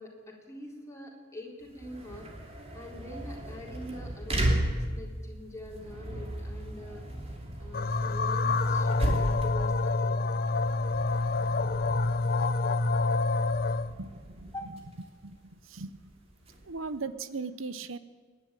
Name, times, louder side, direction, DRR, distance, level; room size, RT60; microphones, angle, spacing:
voice 1, 0.0-2.3 2.7-7.1 7.6-9.7 10.0-10.3 14.5-14.7, left 1 dB, 15° left, -1 dB, 3.9 m, -44 dB
sound 1, 1.6-17.0, right 1 dB, 30° right, 3.3 m, -36 dB
sound 2, 7.7-13.9, left 3 dB, 50° left, 0.7 m, -27 dB
voice 2, 15.6-16.0 16.6-18.0, right 4 dB, 85° right, 13 dB, 1.0 m, -37 dB
28.0 x 11.0 x 9.1 m, 1.5 s
head